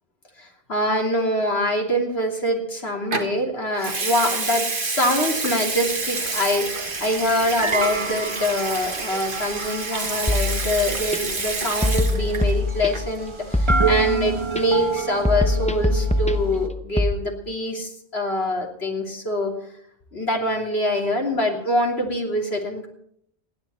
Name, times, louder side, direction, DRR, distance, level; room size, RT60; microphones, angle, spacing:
voice 1, 0.4-19.5 20.1-22.9, left 1 dB, 75° left, 0 dB, 3.4 m, -24 dB
Water tap faucet / Sink (filling or washing) / Liquid, 3.1-3.3 3.8-12.6 12.8-13.2, right 3 dB, 55° right, 1.7 m, -29 dB
sound 1, 5.7-16.7, right 5 dB, 30° right, 1.1 m, -29 dB
sound 2, 10.3-11.2 11.8-13.2 13.5-14.6 15.3-17.1, left 2 dB, 5° left, 0.8 m, -23 dB
29.0 x 10.5 x 4.3 m, 0.68 s
omnidirectional pair, 1.1 m